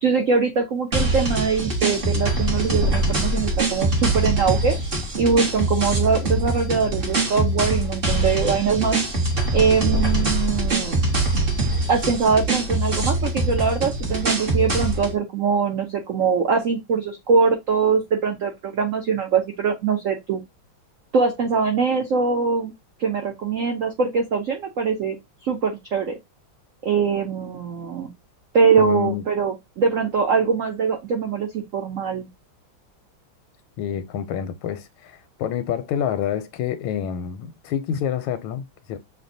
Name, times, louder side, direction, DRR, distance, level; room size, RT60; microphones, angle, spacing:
voice 1, 0.0-4.8 5.2-9.0 9.5-11.0 11.9-20.4 21.1-22.7 23.0-25.2 25.4-26.2 26.8-28.1 28.5-32.3, right 5 dB, 90° right, 0.7 m, -22 dB
sound 1, 0.9-15.1, right 1 dB, 40° right, 0.9 m, -23 dB
voice 2, 28.8-29.2 33.8-39.0, left 9 dB, 85° left, 1.4 m, -27 dB
6.5 x 2.2 x 2.6 m
omnidirectional pair, 2.2 m